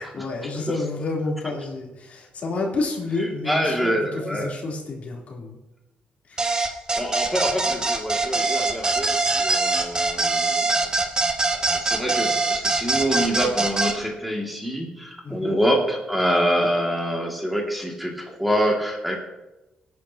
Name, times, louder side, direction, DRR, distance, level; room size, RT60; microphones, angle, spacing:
voice 1, 0.0-3.9 4.3-5.6 6.3-6.5 15.2-15.5, left 3 dB, 55° left, -2 dB, 3.3 m, -29 dB
voice 2, 3.2-4.5 6.4-6.6 7.0-10.9 11.4-19.2, equal, ahead, 0 dB, 2.2 m, -26 dB
sound 1, 6.4-13.9, right 3 dB, 25° right, 1.6 m, -23 dB
17.5 x 9.6 x 2.9 m, 1.0 s
cardioid pair, 95°, 3 cm